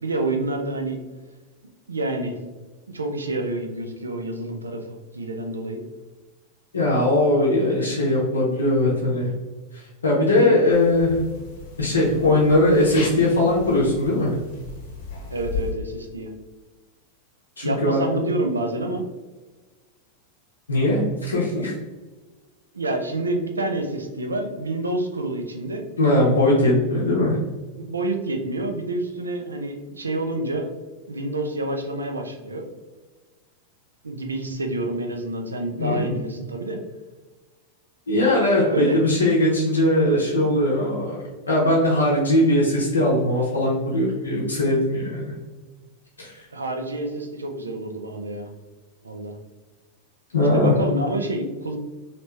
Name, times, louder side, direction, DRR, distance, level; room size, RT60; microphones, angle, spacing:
voice 1, 0.0-1.0 1.9-2.4 2.9-5.8 10.4-10.6 12.2-12.3 15.3-16.3 17.6-19.0 22.7-25.8 27.8-30.7 31.1-32.7 34.0-36.8 38.6-39.0 46.5-48.5 49.0-49.3 50.5-51.8, right 2 dB, 75° right, 3 dB, 0.5 m, -28 dB
voice 2, 6.7-9.3 9.7-11.2 11.8-14.3 17.6-18.0 20.7-21.7 26.0-27.4 35.8-36.1 38.1-45.3 46.2-46.5 50.3-50.7, left 1 dB, 75° left, -4 dB, 0.7 m, -20 dB
sound 1, 10.7-15.7, left 5 dB, 55° left, 1.0 m, -36 dB
3.2 x 2.9 x 3.0 m, 1.3 s
figure-of-eight pair, 90°, 0 cm